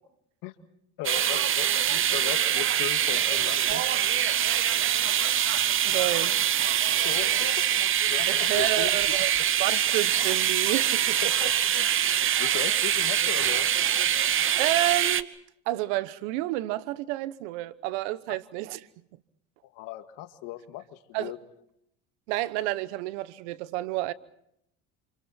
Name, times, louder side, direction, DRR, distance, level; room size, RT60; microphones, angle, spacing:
voice 1, 1.0-3.8 7.0-9.8 11.2-11.9 12.2-13.7 19.6-21.4, left 15 dB, 70° left, 2.1 m, -38 dB
sound 1, 1.0-15.2, right 10 dB, 40° right, 1.0 m, -24 dB
voice 2, 5.8-6.4 8.3-9.3 9.6-11.2 14.6-15.3 15.7-18.8 21.1-21.3 22.3-24.1, right 16 dB, 80° right, 1.2 m, -30 dB
28.5 x 28.0 x 4.4 m
supercardioid pair, 95°, 34 cm